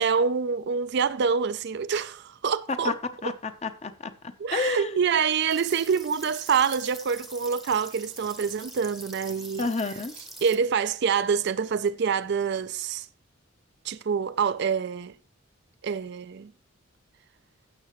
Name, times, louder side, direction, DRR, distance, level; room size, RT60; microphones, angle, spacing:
voice 1, 0.0-2.9 3.2-3.3 4.4-9.7 10.4-13.1 13.8-15.1 15.8-16.5, right 6 dB, 50° right, 0.4 m, -26 dB
voice 2, 3.2-5.0 9.6-10.1, left 3 dB, 30° left, 0.8 m, -30 dB
sound 1, 5.5-10.6, right 1 dB, ahead, 0.9 m, -44 dB
15.5 x 6.8 x 3.1 m
head